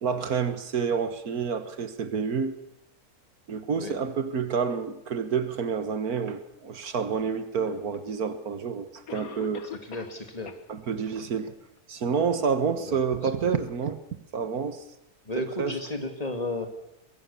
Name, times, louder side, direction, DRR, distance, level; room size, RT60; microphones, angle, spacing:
voice 1, 0.0-2.6 3.5-9.7 10.7-11.5 11.9-14.0 14.3-14.8 15.6-15.7, right 6 dB, 70° right, 1.9 m, -28 dB
Cough, 7.9-8.0 9.1-10.2 10.5-10.6 11.1-11.2 11.8-11.9, left 6 dB, 65° left, 1.9 m, -41 dB
voice 2, 9.8-10.6 12.9-13.0 13.4-13.6 15.3-16.7, left 1 dB, 25° left, 2.4 m, -33 dB
23.5 x 21.0 x 7.0 m
omnidirectional pair, 1.6 m